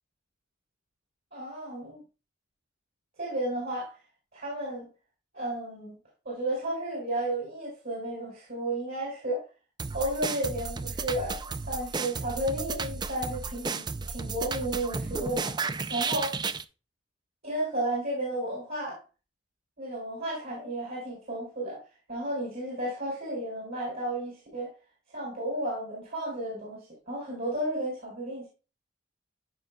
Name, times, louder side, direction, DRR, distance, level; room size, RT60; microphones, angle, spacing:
voice 1, 1.3-2.0 3.2-4.0 4.3-4.9 5.3-5.9 6.2-9.4 9.9-15.5 15.9-16.4 17.4-19.0 19.8-21.8 22.1-24.7 25.1-28.5, right 1 dB, 55° right, -5 dB, 4.1 m, -33 dB
sound 1, 9.8-16.6, right 4 dB, 25° right, 0.4 m, -33 dB
13.5 x 5.0 x 2.2 m, 0.33 s
head